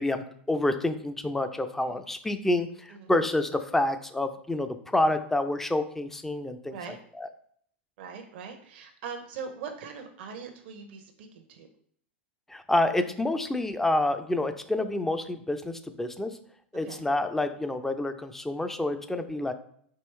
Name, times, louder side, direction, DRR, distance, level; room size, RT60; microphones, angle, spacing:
voice 1, 0.0-6.7 7.2-7.3 12.5-16.3 16.7-19.5, left 1 dB, 5° left, 8 dB, 0.4 m, -28 dB
voice 2, 8.0-11.7 16.8-17.0, right 6 dB, 60° right, 5 dB, 0.6 m, -41 dB
4.5 x 2.9 x 3.2 m, 0.63 s
hypercardioid pair, 95°, 6 cm